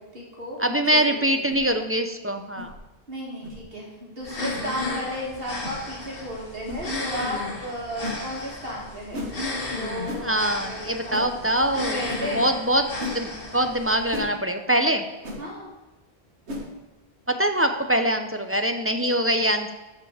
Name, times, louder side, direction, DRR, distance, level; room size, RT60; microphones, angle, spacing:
voice 1, 0.0-1.5 3.1-9.3 9.7-11.6 11.9-12.5 15.4-15.7, equal, 60° right, -3 dB, 2.7 m, -34 dB
voice 2, 0.6-2.7 10.2-12.0 12.3-12.9 13.1-15.0 17.3-19.7, right 1 dB, 20° right, 6 dB, 0.4 m, -23 dB
sound 1, 1.5-1.7 2.6-2.7 3.4-3.6 4.5-4.7 5.6-5.8 6.7-6.8 8.0-8.2 9.1-9.3 10.1-10.3 11.1-11.3 12.1-12.2 13.0-13.2 14.1-14.3 15.2-15.4 16.5-16.7, left 2 dB, 85° right, 1.7 m, -34 dB
sound 2, 4.2-14.2, left 2 dB, 60° left, 1.8 m, -34 dB
14.0 x 5.2 x 4.9 m, 1.1 s
omnidirectional pair, 1.1 m